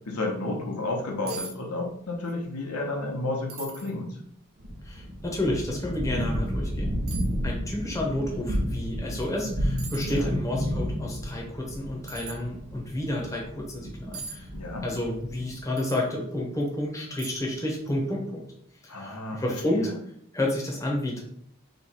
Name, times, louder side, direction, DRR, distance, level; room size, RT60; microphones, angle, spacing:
voice 1, 0.1-4.2 10.1-10.3 14.5-14.9 18.9-19.4 19.7-19.9, left 2 dB, 90° left, 0 dB, 1.0 m, -31 dB
sound 1, 1.3-1.6 1.8-2.4 2.8-2.9 3.5-3.9 4.6-4.7 6.2-6.3 7.1-7.4 9.2-9.4 9.8-10.3 12.1-12.4 14.1-14.4 15.8-16.0 16.6-16.7 17.2-17.6 17.9-18.0, right 5 dB, 65° right, 0.5 m, -40 dB
sound 2, 4.6-15.6, equal, 40° right, 0.9 m, -32 dB
voice 2, 4.8-6.9 7.4-14.5 14.8-18.4 18.8-19.9 20.3-21.2, left 1 dB, 15° left, -2 dB, 0.7 m, -30 dB
3.2 x 2.9 x 4.2 m, 0.68 s
head